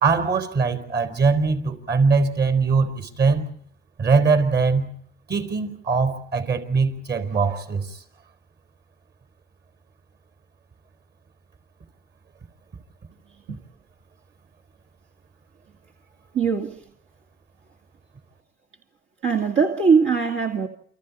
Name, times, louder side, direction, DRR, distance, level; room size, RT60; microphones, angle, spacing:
voice 1, 0.0-3.4 4.0-4.9 5.3-8.0, right 4 dB, 55° right, 4.6 m, -21 dB
voice 2, 16.3-16.8 19.2-20.7, right 5 dB, 75° right, 2.3 m, -21 dB
29.0 x 25.5 x 4.2 m
cardioid pair, 90°, 20 cm